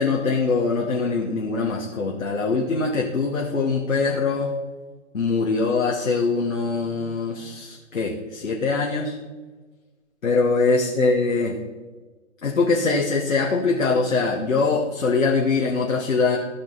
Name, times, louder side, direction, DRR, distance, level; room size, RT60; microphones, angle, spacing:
voice 1, 0.0-4.6 5.1-9.1 10.2-11.6 12.4-16.4, left 4 dB, 75° left, -1 dB, 1.5 m, -22 dB
15.0 x 6.0 x 4.0 m, 1.3 s
figure-of-eight pair, 130°, 39 cm